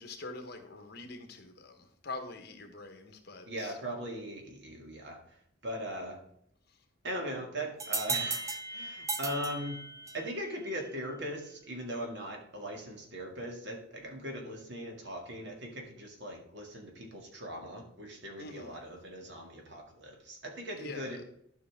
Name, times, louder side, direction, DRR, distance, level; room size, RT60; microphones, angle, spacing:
voice 1, 0.0-3.8 18.4-18.8 20.7-21.2, left 3 dB, 55° left, 5 dB, 1.3 m, -44 dB
voice 2, 3.5-5.2 5.6-6.2 7.0-9.8 10.1-21.2, equal, 60° right, 2 dB, 1.9 m, -40 dB
sound 1, 7.8-10.4, right 3 dB, 15° right, 0.6 m, -35 dB
12.5 x 5.5 x 3.6 m, 0.71 s
head